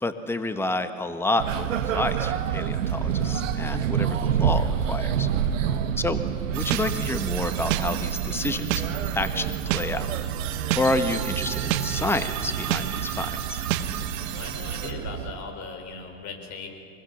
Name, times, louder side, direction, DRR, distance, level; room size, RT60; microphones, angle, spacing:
voice 1, 0.0-5.3 6.0-6.2 6.5-8.7 9.1-10.1 10.7-13.6, left 2 dB, 5° left, 9 dB, 1.3 m, -29 dB
sound 1, 1.4-15.3, right 8 dB, 85° right, 1.3 m, -28 dB
sound 2, 6.5-14.9, right 10 dB, 50° right, 2.4 m, -36 dB
sound 3, 6.7-6.8 7.7-7.8 8.7-8.8 9.7-9.8 10.7-10.8 11.7-11.8 12.7-12.8 13.7-13.8, right 14 dB, 70° right, 1.5 m, -25 dB
voice 2, 14.3-16.7, left 4 dB, 50° left, 4 dB, 5.3 m, -38 dB
24.5 x 21.5 x 7.3 m, 2.3 s
hypercardioid pair, 100°, 37 cm